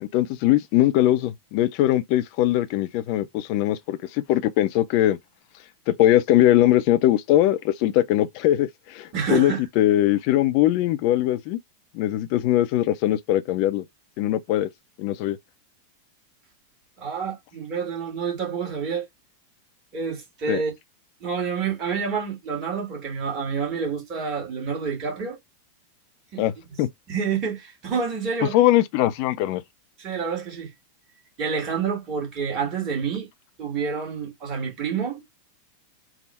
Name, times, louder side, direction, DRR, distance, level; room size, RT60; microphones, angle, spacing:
voice 1, 0.0-5.2 5.9-11.6 11.9-13.8 14.2-14.7 15.0-15.4 20.5-20.6 26.4-26.9 28.5-29.6, left 14 dB, 45° left, 0.5 m, -21 dB
voice 2, 9.1-9.6 17.0-19.1 19.9-20.7 21.2-25.4 26.3-26.4 27.1-28.6 30.0-30.7 31.4-33.3 33.6-35.2, right 6 dB, 35° right, 1.6 m, -28 dB
3.5 x 2.1 x 4.2 m
figure-of-eight pair, 90°, 0 cm